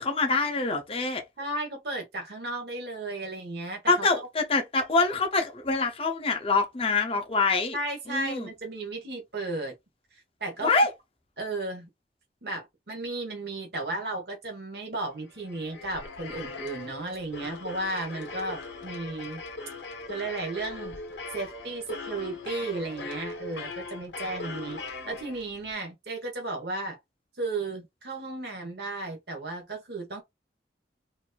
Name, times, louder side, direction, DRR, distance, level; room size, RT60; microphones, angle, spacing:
voice 1, 0.0-1.2 3.9-7.8 8.1-8.5 10.6-10.9, left 3 dB, 30° left, 0.6 m, -25 dB
voice 2, 1.4-4.1 7.7-9.7 10.1-10.7 11.4-11.9 12.4-19.4 20.1-21.0 21.3-27.0 27.4-30.2, right 2 dB, 60° right, 1.2 m, -34 dB
sound 1, 15.3-25.7, left 3 dB, 85° left, 1.2 m, -40 dB
4.4 x 2.6 x 2.3 m
head